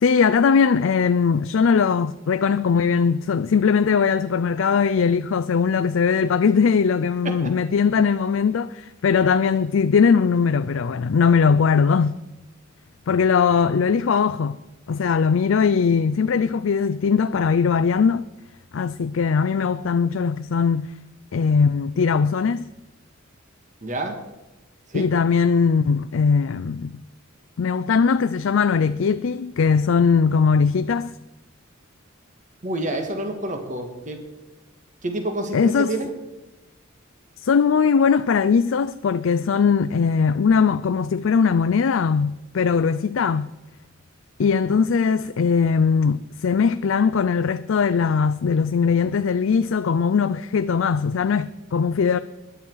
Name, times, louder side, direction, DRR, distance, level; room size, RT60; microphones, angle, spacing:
voice 1, 0.0-12.1 13.1-14.6 14.9-18.2 18.7-20.9 21.3-22.7 24.9-27.0 27.6-31.2 35.5-35.9 37.4-43.5 44.4-52.2, left 6 dB, 70° left, 0.4 m, -20 dB
voice 2, 23.8-24.2 24.9-25.1 32.6-34.3 35.0-36.1, right 1 dB, 40° right, 1.7 m, -28 dB
20.5 x 11.0 x 4.7 m
head